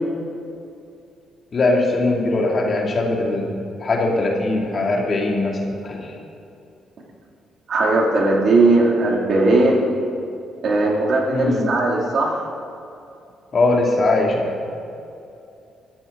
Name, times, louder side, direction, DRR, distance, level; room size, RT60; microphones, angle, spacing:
voice 1, 1.5-6.1 11.3-11.7 13.5-14.5, left 2 dB, 40° left, -1 dB, 2.9 m, -21 dB
voice 2, 7.7-9.8 10.6-12.4, right 2 dB, 60° right, -2 dB, 3.3 m, -18 dB
21.0 x 13.5 x 4.2 m, 2.6 s
cardioid pair, 90°, 0 cm